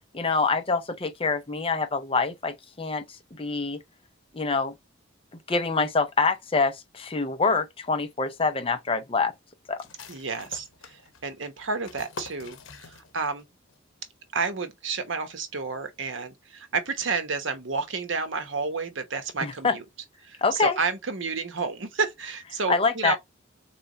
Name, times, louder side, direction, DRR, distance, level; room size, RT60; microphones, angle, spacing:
voice 1, 0.1-3.8 4.3-4.7 5.5-9.3 9.7-9.8 19.4-19.8 20.4-20.8 22.7-23.2, left 4 dB, 30° left, 0.6 m, -25 dB
sound 1, 9.8-13.4 13.7-13.8 14.2-14.7, left 4 dB, 85° left, 0.9 m, -45 dB
voice 2, 10.1-13.5 14.3-19.8 20.2-23.2, right 4 dB, 70° right, 1.0 m, -31 dB
3.9 x 3.4 x 3.9 m
head